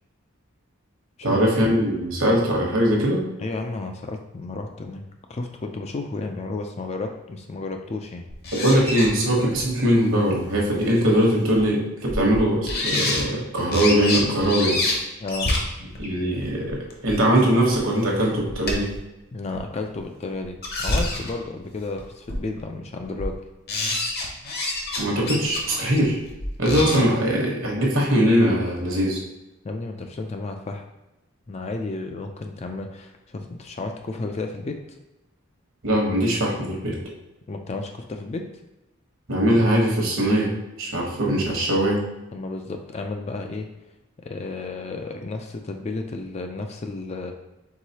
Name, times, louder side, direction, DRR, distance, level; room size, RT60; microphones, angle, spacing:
voice 1, 1.2-3.3 8.5-14.8 16.0-16.8 17.0-18.9 25.0-26.2 26.6-29.2 35.8-36.9 39.3-40.5 40.8-42.0, equal, 65° right, -1 dB, 1.1 m, -21 dB
voice 2, 3.4-5.0 5.3-8.3 15.2-15.5 19.3-23.4 26.8-27.0 29.6-30.8 31.5-34.8 37.5-38.5 42.3-43.7 44.3-47.3, left 3 dB, 30° left, 4 dB, 0.3 m, -32 dB
sound 1, 8.3-9.1 9.5-9.6 10.8-10.9 11.6-11.7 12.1-12.4 12.7-13.2 13.7-14.9 15.3-17.1 17.7-17.8 18.1-19.0 19.5-19.6 20.4-21.4 22.0-22.1 22.3-22.6 23.0-23.3 23.7-25.0 25.2-27.0, left 2 dB, 45° left, 0.8 m, -27 dB
4.7 x 3.8 x 2.8 m, 0.97 s
head